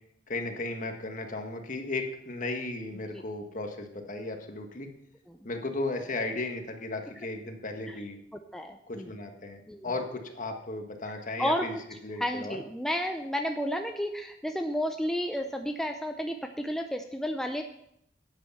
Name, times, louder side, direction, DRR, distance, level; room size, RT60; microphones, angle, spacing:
voice 1, 0.3-4.9 5.4-8.2 8.9-11.8 12.0-12.6, left 2 dB, 45° left, 4 dB, 1.5 m, -35 dB
voice 2, 8.5-9.1 9.7-9.9 11.4-11.7 12.2-17.6, equal, ahead, 4 dB, 0.6 m, -31 dB
11.0 x 8.3 x 5.7 m, 0.75 s
head